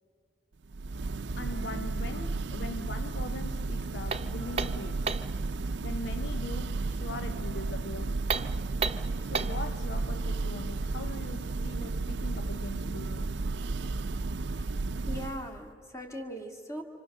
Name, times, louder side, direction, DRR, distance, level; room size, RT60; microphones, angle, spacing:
Church bell, 0.7-15.6, right 3 dB, 75° right, 0.6 m, -33 dB
voice 1, 1.4-5.2 5.8-8.3 9.2-13.4, left 2 dB, 70° left, 0.7 m, -41 dB
sound 1, 4.1-5.4 8.2-9.7, right 5 dB, 35° right, 0.8 m, -33 dB
voice 2, 14.5-16.8, equal, 15° left, 2.2 m, -40 dB
29.0 x 26.0 x 6.7 m
head